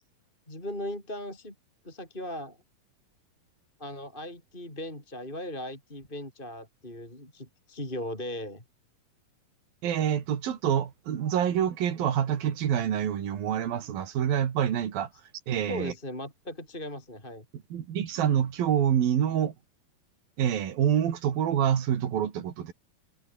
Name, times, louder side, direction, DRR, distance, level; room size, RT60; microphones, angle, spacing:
voice 1, 0.5-1.5 1.8-2.6 3.8-8.6 15.7-17.5, left 1 dB, 15° left, 6.4 m, -38 dB
voice 2, 9.8-15.1 15.5-15.9 17.7-19.5 20.4-22.7, right 9 dB, 80° right, 4.2 m, -26 dB
omnidirectional pair, 4.1 m